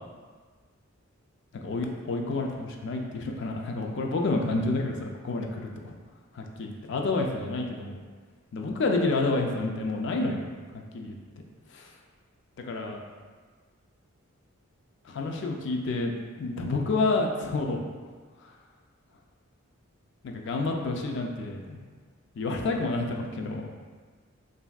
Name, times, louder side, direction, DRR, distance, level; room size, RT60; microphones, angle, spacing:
voice 1, 1.6-5.9 6.3-8.0 8.5-10.4 10.7-11.2 11.7-11.9 12.6-13.0 15.0-16.1 16.4-17.8 20.2-21.8 22.4-23.7, left 3 dB, 55° left, 2 dB, 0.3 m, -29 dB
3.3 x 2.5 x 2.2 m, 1.5 s
head